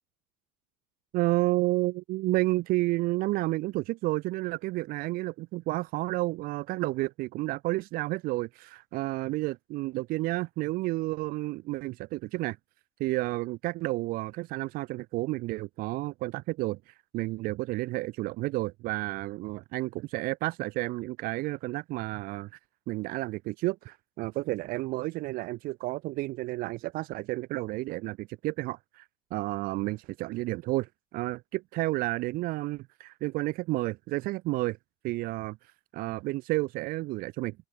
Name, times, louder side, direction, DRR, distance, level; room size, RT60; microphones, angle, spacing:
voice 1, 1.1-12.6 13.0-22.5 22.9-29.0 29.3-34.8 35.0-35.6 35.9-37.6, right 20 dB, 50° right, 2.8 m, -31 dB
cardioid pair, 160°, 19 cm